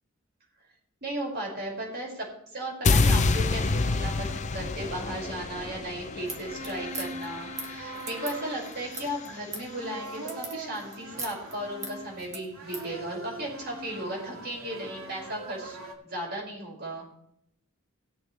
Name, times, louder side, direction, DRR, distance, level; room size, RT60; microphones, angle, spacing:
voice 1, 1.0-15.8 16.0-17.1, right 1 dB, 50° right, -2 dB, 5.9 m, -36 dB
sound 1, 2.8-9.0, left 3 dB, 35° left, 0.5 m, -28 dB
sound 2, 5.5-15.9, right 2 dB, 85° right, 2.3 m, -42 dB
sound 3, 6.3-12.9, right 3 dB, 30° right, 1.8 m, -41 dB
19.5 x 7.9 x 3.4 m, 0.72 s
head